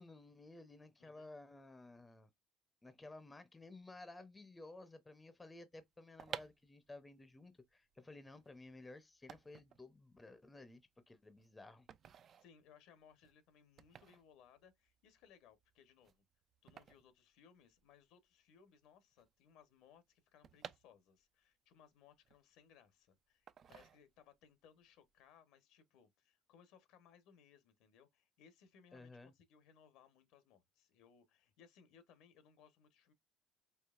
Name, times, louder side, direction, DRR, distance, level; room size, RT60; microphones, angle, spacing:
voice 1, 0.0-2.3 2.8-11.9 28.9-29.3, left 2 dB, 15° left, 0.6 m, -55 dB
voice 2, 1.0-1.3 12.4-16.2 16.6-33.1, left 7 dB, 75° left, 0.9 m, -66 dB
sound 1, 5.9-18.1 18.3-18.4 18.6-21.5 21.9-22.9 23.5-24.5 24.8-25.1, right 8 dB, 40° right, 0.4 m, -55 dB
4.6 x 2.7 x 2.4 m
cardioid pair, 130°, 0 cm